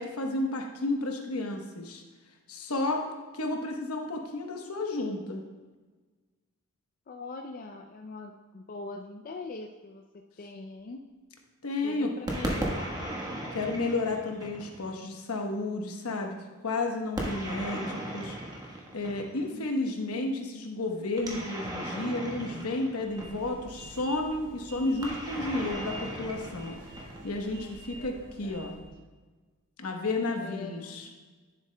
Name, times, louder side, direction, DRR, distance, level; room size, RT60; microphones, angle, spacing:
voice 1, 0.0-2.0 2.5-3.0 3.3-5.4 11.6-12.1 13.5-16.3 16.6-18.4 18.9-26.8 27.2-28.7 29.8-31.1, left 2 dB, 70° left, 2 dB, 1.0 m, -32 dB
voice 2, 7.1-11.0 11.8-13.1 19.5-20.2 27.9-28.8 30.4-31.0, left 3 dB, 40° left, 3 dB, 0.4 m, -43 dB
sound 1, 12.3-14.9 17.2-19.5 21.2-23.6 25.0-27.5, right 1 dB, 20° right, 1.2 m, -36 dB
sound 2, 23.0-28.9, right 1 dB, 35° right, 2.0 m, -47 dB
10.5 x 7.3 x 2.2 m, 1.3 s
head